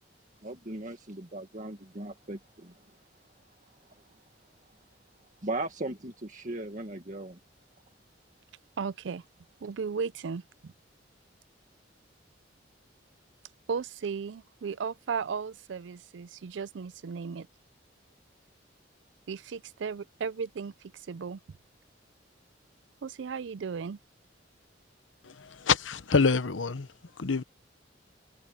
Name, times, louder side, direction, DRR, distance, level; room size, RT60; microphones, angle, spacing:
voice 1, 0.4-2.9 3.8-4.2 5.4-7.4, right 2 dB, 45° right, 1.9 m, -38 dB
voice 2, 8.8-9.2 9.6-10.7 13.7-17.5 19.3-20.7 21.1-21.4 23.0-24.0, right 5 dB, 75° right, 0.4 m, -35 dB
voice 3, 25.2-26.9 27.2-27.4, left 5 dB, 90° left, 0.9 m, -26 dB
head